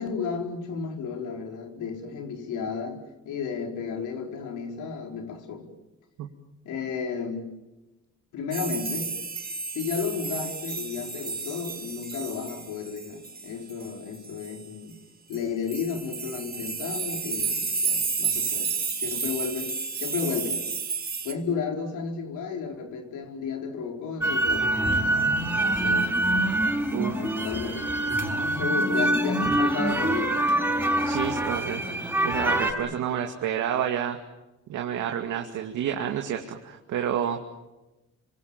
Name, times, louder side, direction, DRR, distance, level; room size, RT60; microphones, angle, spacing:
voice 1, 0.0-3.0 3.2-5.7 6.6-7.5 8.3-9.1 9.7-15.0 15.3-18.7 19.0-19.7 20.0-20.6 21.2-24.7 25.6-26.1 27.2-27.8 28.5-30.3 32.9-33.0, left 6 dB, 85° left, 3 dB, 4.6 m, -33 dB
sound 1, 8.5-14.6 15.3-15.4 15.7-21.3, right 5 dB, 30° right, 4.0 m, -32 dB
sound 2, 24.2-32.7, right 1 dB, 5° right, 6.1 m, -25 dB
voice 2, 31.1-31.8 32.2-34.2 34.7-37.4, right 9 dB, 80° right, 3 dB, 2.4 m, -29 dB
28.5 x 26.0 x 7.4 m, 1.0 s
cardioid pair, 90°, 30 cm